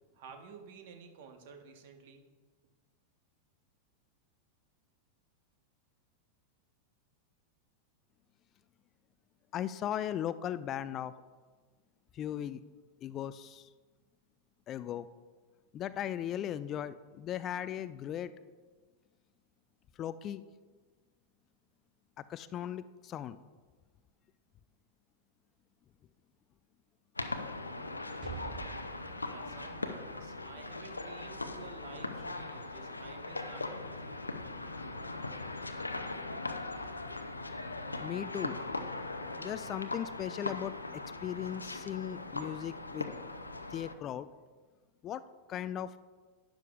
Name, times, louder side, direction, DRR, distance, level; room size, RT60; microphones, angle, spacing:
voice 1, 0.1-2.2 29.3-34.2, right 5 dB, 50° right, 5 dB, 1.2 m, -52 dB
voice 2, 9.5-11.1 12.1-12.6 13.0-13.7 14.7-15.1 15.7-18.3 20.0-20.4 22.3-23.4 38.0-38.6 39.4-43.1 43.7-44.3 45.0-45.2 45.5-46.0, left 10 dB, 30° left, 15 dB, 0.3 m, -37 dB
sound 1, 27.2-43.9, left 2 dB, 80° left, 0.6 m, -40 dB
Explosion, 28.2-32.0, right 8 dB, 35° right, 0.6 m, -49 dB
12.0 x 10.5 x 2.4 m, 1.4 s
figure-of-eight pair, 90°, 0 cm